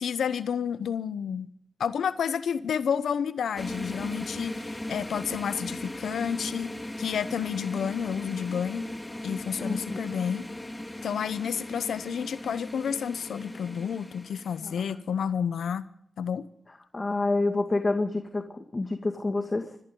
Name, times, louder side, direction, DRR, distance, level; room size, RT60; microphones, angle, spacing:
voice 1, 0.0-1.5 1.8-6.7 7.0-8.9 9.2-10.5 11.0-15.8 16.2-16.5, left 7 dB, 85° left, 14 dB, 0.8 m, -30 dB
sound 1, 3.6-14.9, left 1 dB, 15° left, 1.9 m, -38 dB
voice 2, 9.6-10.0 14.6-15.0 16.9-19.8, left 2 dB, 35° left, 5 dB, 2.1 m, -28 dB
26.5 x 14.0 x 3.9 m, 0.67 s
supercardioid pair, 45°, 0 cm